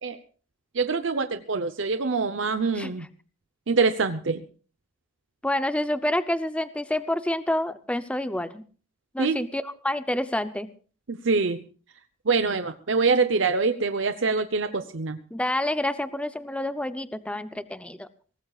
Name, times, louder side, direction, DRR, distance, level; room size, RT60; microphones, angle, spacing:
voice 1, 0.7-3.1 3.7-4.4 9.2-9.4 11.1-11.6 12.3-15.2, right 4 dB, 70° right, 9 dB, 0.8 m, -25 dB
voice 2, 5.4-8.6 9.1-10.7 15.3-18.1, left 1 dB, 5° left, 11 dB, 0.6 m, -28 dB
23.0 x 18.5 x 2.4 m, 0.40 s
head